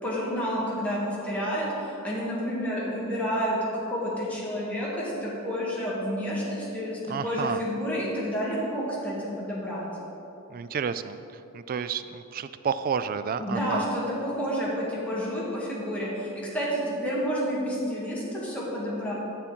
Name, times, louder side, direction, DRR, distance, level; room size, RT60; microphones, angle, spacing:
voice 1, 0.0-9.9 13.4-19.1, equal, 5° left, -7 dB, 2.1 m, -30 dB
voice 2, 7.1-7.6 10.5-11.2 11.5-13.9, right 6 dB, 45° right, 12 dB, 0.3 m, -30 dB
9.5 x 7.1 x 4.4 m, 2.9 s
head